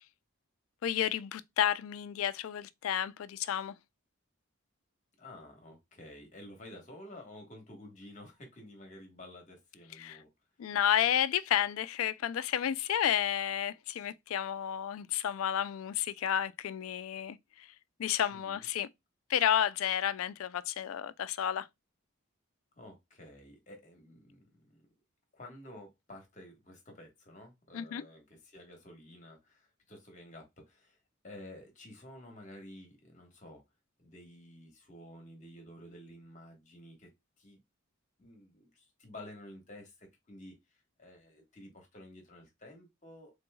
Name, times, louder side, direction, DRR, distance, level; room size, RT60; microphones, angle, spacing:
voice 1, 0.8-3.7 10.0-10.2 10.6-17.4 18.0-18.9 19.3-21.7 27.7-28.0, left 10 dB, 85° left, 0.3 m, -31 dB
voice 2, 5.2-10.3 18.3-18.7 22.8-24.9 25.3-31.0 31.2-33.6 34.0-37.1 37.4-37.6 38.2-43.3, left 1 dB, 35° left, 1.3 m, -51 dB
3.7 x 3.0 x 2.2 m
head